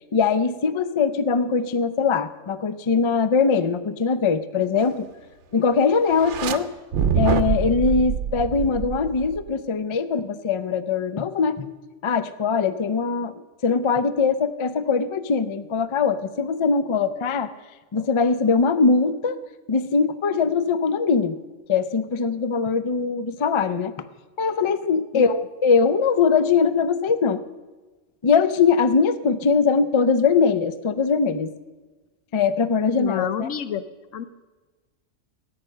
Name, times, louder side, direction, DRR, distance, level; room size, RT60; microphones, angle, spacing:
voice 1, 0.1-5.1 5.5-6.7 7.1-11.7 12.0-13.3 13.6-17.5 17.9-19.4 19.7-21.4 21.7-23.9 24.4-27.4 28.2-31.5 32.3-33.5, left 5 dB, 45° left, 13 dB, 0.4 m, -21 dB
sound 1, 6.1-6.6 6.9-9.5, right 7 dB, 70° right, 1.0 m, -25 dB
voice 2, 32.9-33.8 34.1-34.2, left 9 dB, 85° left, 12 dB, 1.1 m, -29 dB
13.5 x 9.4 x 6.5 m, 1.3 s
omnidirectional pair, 1.3 m